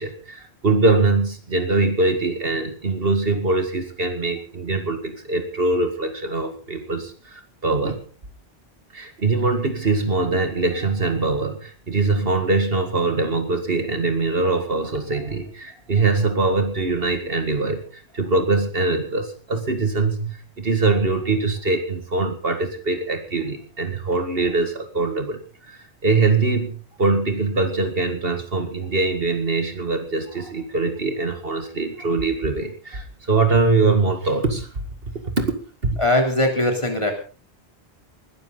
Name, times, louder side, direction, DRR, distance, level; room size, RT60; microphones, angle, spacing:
voice 1, 0.0-8.0 8.9-34.7 35.4-35.5 35.8-35.9, right 3 dB, 60° right, 7 dB, 2.2 m, -22 dB
voice 2, 36.0-37.1, left 1 dB, 25° left, 2 dB, 3.6 m, -20 dB
20.5 x 13.5 x 4.0 m, 0.37 s
omnidirectional pair, 1.1 m